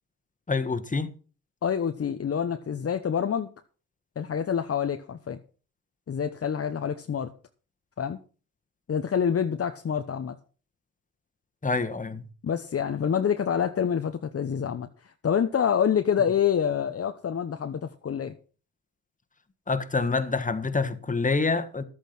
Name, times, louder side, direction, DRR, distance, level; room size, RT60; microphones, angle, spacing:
voice 1, 0.5-1.1 11.6-12.2 19.7-21.8, left 4 dB, 25° left, 1.6 m, -26 dB
voice 2, 1.6-3.5 4.2-5.4 6.1-7.3 8.0-8.2 8.9-10.4 12.4-18.3, left 8 dB, 45° left, 1.0 m, -27 dB
11.5 x 8.5 x 5.9 m
supercardioid pair, 60°, 32 cm